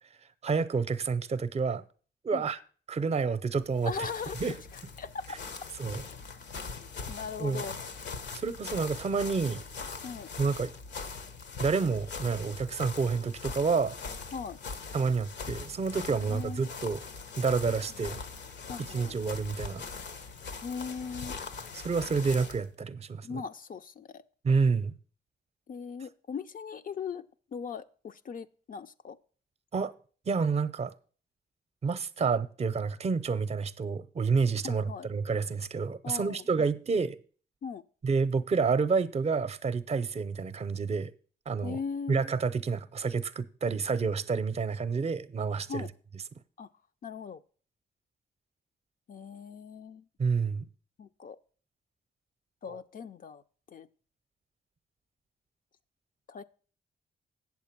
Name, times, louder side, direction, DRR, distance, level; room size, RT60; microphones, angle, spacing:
voice 1, 0.4-1.8 2.2-2.6 2.9-3.9 4.4-4.5 5.8-6.0 7.4-7.7 8.3-9.6 10.4-10.7 11.6-14.0 14.9-17.0 17.4-18.2 18.9-19.8 21.7-23.3 24.4-24.9 29.7-29.9 30.3-30.9 31.8-37.2 38.0-41.1 41.5-41.8 42.1-45.9 50.2-50.7 52.7-52.8, right 5 dB, 40° right, 0.6 m, -29 dB
sound 1, 3.6-22.7, left 4 dB, 85° left, 1.0 m, -41 dB
voice 2, 3.8-4.5 5.0-5.4 6.8-7.8 10.0-10.3 14.3-14.6 16.2-16.7 18.7-19.1 20.6-21.3 23.2-24.2 25.7-29.2 34.6-35.1 36.0-36.5 37.6-37.8 41.6-42.2 45.7-45.9 46.6-46.7 47.0-47.4 49.1-50.1 51.0-51.4 52.6-53.4 53.7-53.9 56.3-56.4, left 5 dB, 55° left, 0.5 m, -39 dB
8.2 x 7.2 x 5.9 m
cardioid pair, 85°, 18 cm